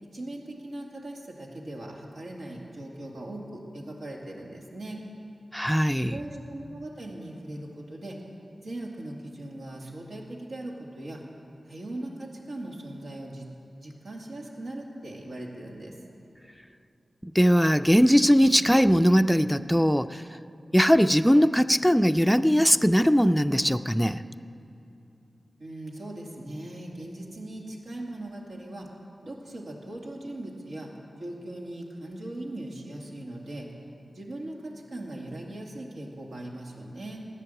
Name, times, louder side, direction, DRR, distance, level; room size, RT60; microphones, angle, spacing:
voice 1, 0.0-5.0 6.1-8.2 8.6-11.2 11.7-13.5 13.8-16.0 25.6-28.9 29.2-33.7 34.1-37.3, right 1 dB, 90° right, -1 dB, 2.3 m, -39 dB
voice 2, 5.5-6.2 17.2-20.2 20.7-24.2, equal, ahead, 9 dB, 0.4 m, -20 dB
15.5 x 10.0 x 7.9 m, 2.8 s
wide cardioid pair, 75°, 0 cm